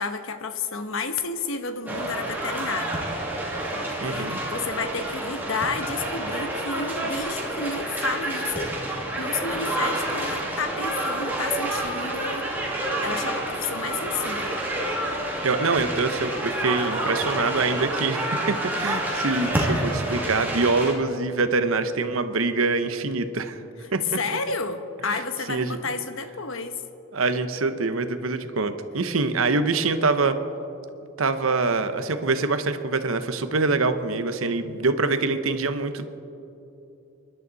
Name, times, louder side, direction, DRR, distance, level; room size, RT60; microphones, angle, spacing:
voice 1, 0.0-3.0 3.7-12.5 13.0-14.6 24.1-26.8, left 4 dB, 75° left, 9 dB, 1.0 m, -31 dB
sound 1, 1.9-20.9, right 1 dB, 10° right, 2.3 m, -28 dB
voice 2, 4.0-4.4 15.4-23.6 23.9-24.0 25.1-25.2 25.5-25.8 27.1-30.4 31.2-36.0, right 3 dB, 85° right, 9 dB, 1.0 m, -25 dB
29.5 x 11.5 x 4.1 m, 2.9 s
head